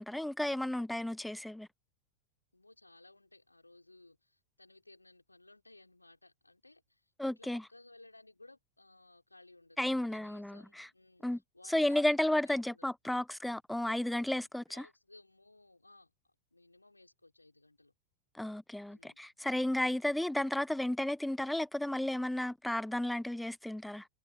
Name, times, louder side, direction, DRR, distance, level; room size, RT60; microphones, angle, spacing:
voice 1, 0.0-1.7 7.2-7.6 9.8-10.9 11.2-11.4 11.7-14.6 18.3-24.1, left 1 dB, 5° left, 1.1 m, -33 dB
voice 2, 2.5-12.9 14.7-16.1 16.5-17.9 18.9-19.2, left 2 dB, 85° left, 5.7 m, -60 dB
figure-of-eight pair, 90°, 0 cm